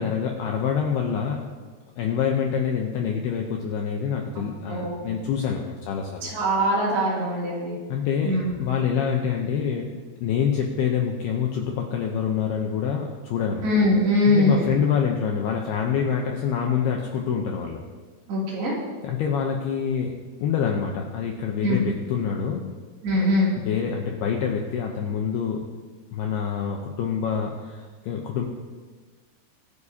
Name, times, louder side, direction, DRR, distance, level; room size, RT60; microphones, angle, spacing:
voice 1, 0.0-1.4 2.0-6.3 7.9-13.6 14.3-17.8 19.0-20.1 20.4-22.7 23.7-25.6 26.1-28.4, left 7 dB, 80° left, 1 dB, 2.3 m, -26 dB
voice 2, 4.4-5.0 6.2-7.8 8.2-8.6 13.6-14.7 18.3-18.7 21.6-21.8 23.0-23.5, left 1 dB, 55° right, -6 dB, 4.7 m, -22 dB
22.5 x 9.7 x 2.8 m, 1.4 s
omnidirectional pair, 5.7 m